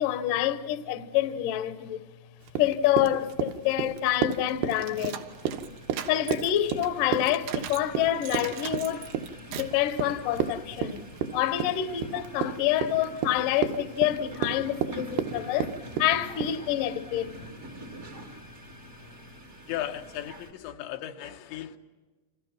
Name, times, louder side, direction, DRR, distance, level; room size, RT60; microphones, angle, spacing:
voice 1, 0.0-2.1 2.6-5.2 6.1-9.1 9.5-11.1 11.3-17.4, left 12 dB, 70° left, 2.1 m, -27 dB
Run, 2.5-16.6, right 8 dB, 75° right, 3.1 m, -32 dB
sound 1, 3.4-20.5, right 1 dB, 45° right, 0.8 m, -46 dB
sound 2, 4.3-7.9 8.2-9.8, right 9 dB, 90° right, 3.9 m, -41 dB
voice 2, 19.7-21.8, left 12 dB, 85° left, 3.5 m, -36 dB
30.0 x 27.0 x 6.0 m
omnidirectional pair, 5.0 m